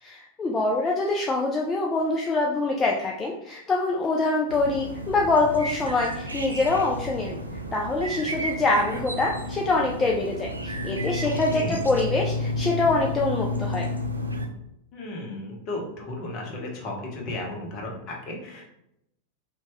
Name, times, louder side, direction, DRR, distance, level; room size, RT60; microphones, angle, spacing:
voice 1, 0.0-7.4 7.7-13.8, left 3 dB, 15° left, -1 dB, 0.3 m, -25 dB
sound 1, 4.5-14.5, left 1 dB, 80° right, 0.3 m, -31 dB
voice 2, 11.2-11.8 14.9-18.6, left 2 dB, 40° left, 0 dB, 0.8 m, -34 dB
2.8 x 2.2 x 2.9 m, 0.80 s
figure-of-eight pair, 90°, 0 cm